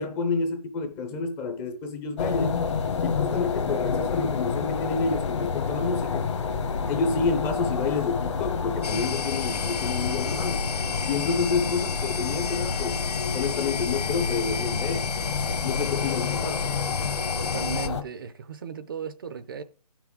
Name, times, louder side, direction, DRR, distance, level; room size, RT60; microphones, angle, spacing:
voice 1, 0.0-2.6 3.0-6.3 6.9-10.6 11.0-13.0 13.3-15.1 15.6-16.8, left 4 dB, 10° left, 0.6 m, -29 dB
sound 1, 2.2-18.0, left 5 dB, 50° left, 1.1 m, -29 dB
sound 2, 8.8-17.9, left 6 dB, 80° left, 0.9 m, -33 dB
voice 2, 17.4-19.6, right 6 dB, 35° right, 0.5 m, -36 dB
14.5 x 6.0 x 3.6 m
figure-of-eight pair, 150°, 20 cm